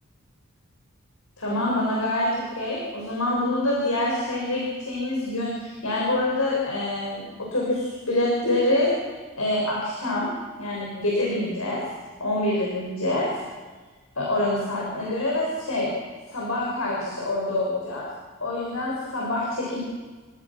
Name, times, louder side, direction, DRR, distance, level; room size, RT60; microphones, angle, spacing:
voice 1, 1.4-8.9 9.3-10.3 10.6-11.8 12.2-13.3 14.2-15.9 16.3-18.0 18.4-19.8, left 1 dB, 85° left, -4 dB, 6.2 m, -26 dB
30.0 x 18.0 x 6.1 m, 1.4 s
head